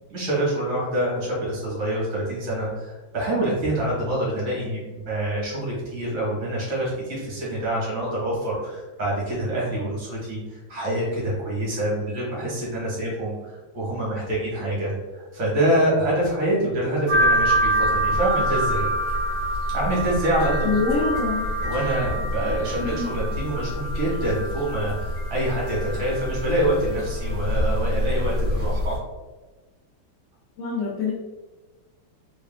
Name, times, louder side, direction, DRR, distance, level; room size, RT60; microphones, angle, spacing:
voice 1, 0.1-18.9 19.7-20.6 21.6-29.0, right 1 dB, 85° right, -5 dB, 2.3 m, -26 dB
sound 1, 17.1-29.0, equal, 70° right, 2.4 m, -25 dB
voice 2, 20.6-21.5 22.8-23.1 30.6-31.1, left 4 dB, 65° left, -6 dB, 0.7 m, -25 dB
4.3 x 2.2 x 3.6 m, 1.2 s
omnidirectional pair, 2.1 m